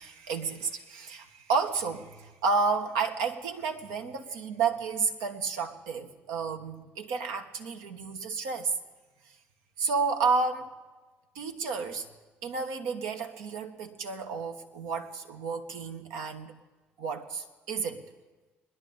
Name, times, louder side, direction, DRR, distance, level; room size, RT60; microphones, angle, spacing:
voice 1, 0.0-8.7 9.8-10.7 11.3-12.1 12.4-16.6 17.0-18.0, right 4 dB, 75° right, 5 dB, 1.1 m, -31 dB
21.5 x 10.5 x 3.9 m, 1.2 s
hypercardioid pair, 55°, 6 cm